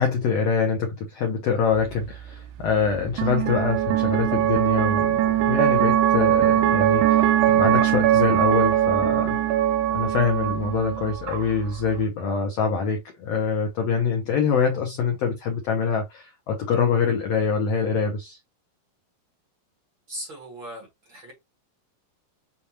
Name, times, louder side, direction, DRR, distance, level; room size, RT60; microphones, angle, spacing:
voice 1, 0.0-9.4 9.9-18.4, left 5 dB, 75° left, 1.4 m, -25 dB
sound 1, 1.7-12.0, right 11 dB, 80° right, 1.8 m, -22 dB
voice 2, 20.1-21.3, equal, 45° right, 1.9 m, -38 dB
6.9 x 2.4 x 2.9 m
omnidirectional pair, 4.0 m